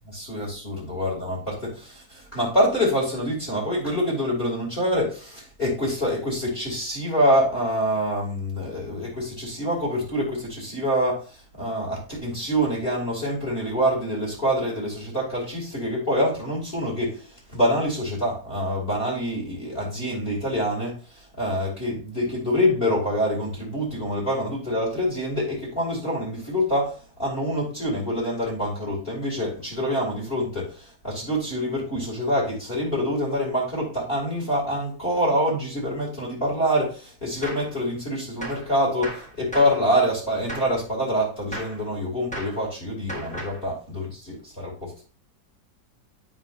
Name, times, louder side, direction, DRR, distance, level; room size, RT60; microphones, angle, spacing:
voice 1, 0.1-45.0, equal, 30° left, -2 dB, 2.7 m, -26 dB
Gunshot gunfire, 37.4-37.7 38.4-38.7 39.0-39.8 40.5-40.8 41.5-41.8 42.3-42.6 43.1-43.6, right 1 dB, 5° left, 1.2 m, -35 dB
9.0 x 5.0 x 2.6 m, 0.37 s
omnidirectional pair, 1.9 m